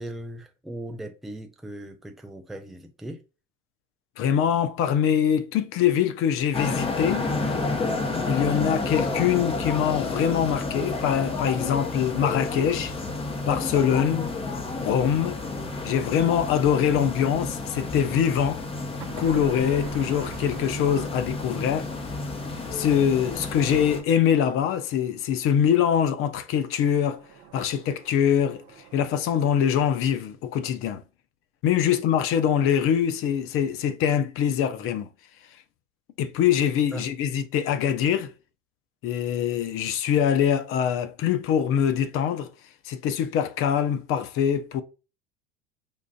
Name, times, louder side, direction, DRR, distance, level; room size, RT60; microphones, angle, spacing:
voice 1, 0.0-3.2 36.9-37.0, right 1 dB, ahead, 0.4 m, -38 dB
voice 2, 4.2-7.3 8.3-12.9 13.4-14.3 14.8-15.4 15.8-18.6 19.2-21.9 22.7-27.3 27.5-28.6 28.9-31.0 31.6-35.1 36.2-38.3 39.0-42.5 42.8-44.8, left 9 dB, 50° left, 0.6 m, -23 dB
sound 1, 6.5-24.0, left 3 dB, 20° left, 0.8 m, -30 dB
sound 2, 12.1-15.0 19.0-25.3 26.5-29.0, right 7 dB, 55° right, 0.7 m, -47 dB
5.3 x 2.5 x 2.3 m
hypercardioid pair, 75°, 29 cm